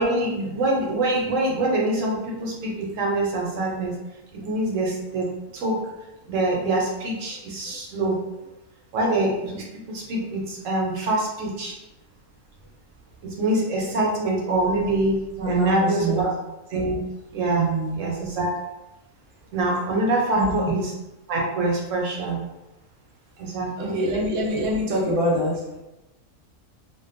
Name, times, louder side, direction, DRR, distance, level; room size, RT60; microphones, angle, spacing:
voice 1, 0.0-4.0 4.3-5.9 6.3-8.2 8.9-11.7 13.2-15.2 15.4-16.3 16.7-17.0 17.3-18.5 19.5-20.9 21.3-22.4 23.4-24.0, right 2 dB, 70° right, -2 dB, 0.9 m, -25 dB
voice 2, 15.4-16.2 17.6-18.0 20.3-20.5 23.8-25.6, right 1 dB, 40° right, -4 dB, 0.5 m, -24 dB
2.5 x 2.2 x 2.5 m, 0.97 s
omnidirectional pair, 1.4 m